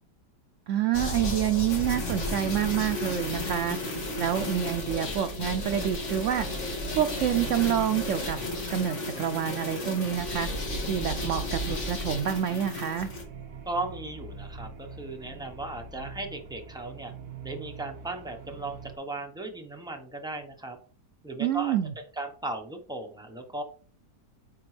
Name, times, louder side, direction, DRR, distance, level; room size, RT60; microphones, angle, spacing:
voice 1, 0.7-3.8 4.2-6.5 7.0-8.4 8.7-10.5 10.9-13.1 21.4-21.9, right 10 dB, 80° right, 9 dB, 0.6 m, -27 dB
sound 1, 0.9-13.2, left 1 dB, 45° left, 1.8 m, -33 dB
sound 2, 5.7-19.0, right 5 dB, 65° right, 1.7 m, -46 dB
voice 2, 13.6-17.1 17.4-20.8 21.2-21.7 22.2-23.6, right 2 dB, 5° right, 3 dB, 0.5 m, -36 dB
9.5 x 4.1 x 3.2 m, 0.43 s
omnidirectional pair, 1.9 m